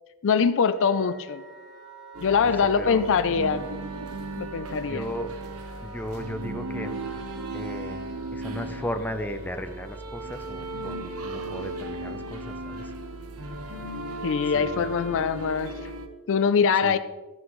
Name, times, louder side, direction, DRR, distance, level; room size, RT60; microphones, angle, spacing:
voice 1, 0.2-1.4 2.2-3.7 4.4-5.0 14.2-15.9 16.3-17.0, left 6 dB, 60° left, 13 dB, 0.4 m, -23 dB
Wind instrument woodwind instrument, 0.7-10.0, right 4 dB, 35° right, 2.8 m, -48 dB
sound 1, 2.1-16.1, right 2 dB, 75° right, 1.0 m, -36 dB
voice 2, 2.6-3.1 3.4-3.5 4.7-5.4 5.8-7.0 7.5-12.9 14.5-15.2 16.8-17.0, equal, 10° left, 6 dB, 0.6 m, -36 dB
13.0 x 9.7 x 3.1 m, 1.2 s
head